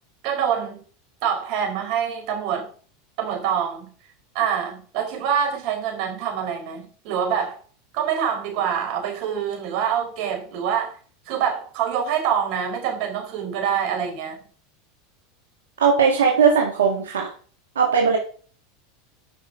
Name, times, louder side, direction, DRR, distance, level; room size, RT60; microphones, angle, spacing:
voice 1, 0.2-0.8 1.2-2.7 3.2-3.9 4.3-7.6 7.9-10.9 11.3-14.4, right 8 dB, 60° right, 2 dB, 4.3 m, -25 dB
voice 2, 15.8-17.3 17.8-18.2, right 6 dB, 90° right, 0 dB, 1.8 m, -18 dB
10.0 x 5.8 x 5.0 m, 0.42 s
hypercardioid pair, 100°, 0 cm